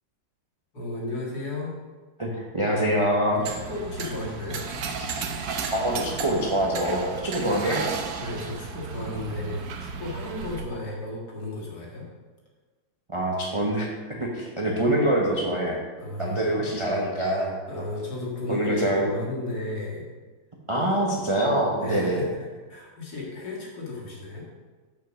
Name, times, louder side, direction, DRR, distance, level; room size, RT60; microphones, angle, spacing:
voice 1, 0.7-1.7 3.3-4.6 7.4-7.6 8.2-12.1 16.0-16.5 17.7-20.1 20.8-20.9 21.8-24.4, left 2 dB, 55° left, -3 dB, 2.4 m, -34 dB
voice 2, 2.2-3.4 5.7-7.8 13.1-13.9 14.2-15.8 16.2-17.6 18.5-19.1 20.7-22.2, right 1 dB, 25° right, -2 dB, 0.7 m, -25 dB
sound 1, 3.4-10.6, right 5 dB, 60° right, 1.1 m, -34 dB
7.2 x 5.5 x 6.2 m, 1.4 s
omnidirectional pair, 2.1 m